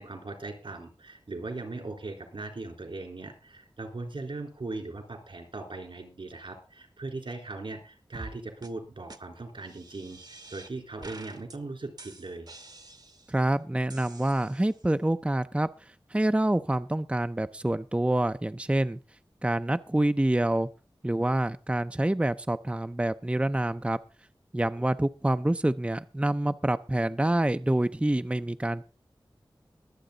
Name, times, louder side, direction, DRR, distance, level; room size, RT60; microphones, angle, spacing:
voice 1, 0.0-12.5 24.8-24.9, right 3 dB, 80° right, 4 dB, 3.6 m, -39 dB
sound 1, 8.1-8.3 8.6-8.7 9.1-9.2 9.6-10.7 11.0-11.6 12.0-13.4 13.9-14.8, right 2 dB, 55° right, 1.1 m, -47 dB
voice 2, 13.3-19.0 19.4-20.7 21.0-24.0 24.5-28.8, right 1 dB, 15° right, 10 dB, 0.5 m, -27 dB
22.0 x 7.8 x 3.9 m, 0.33 s
wide cardioid pair, 60°, 9 cm